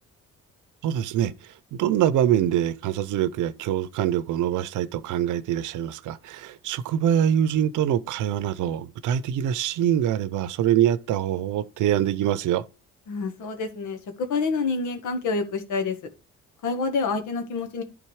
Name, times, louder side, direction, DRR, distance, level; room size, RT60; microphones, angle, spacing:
voice 1, 0.8-1.3 1.8-12.6, right 10 dB, 80° right, 0.7 m, -24 dB
voice 2, 13.1-15.9 16.6-17.8, left 4 dB, 80° left, 1.7 m, -27 dB
11.0 x 3.8 x 4.8 m
cardioid pair, 90°, 30 cm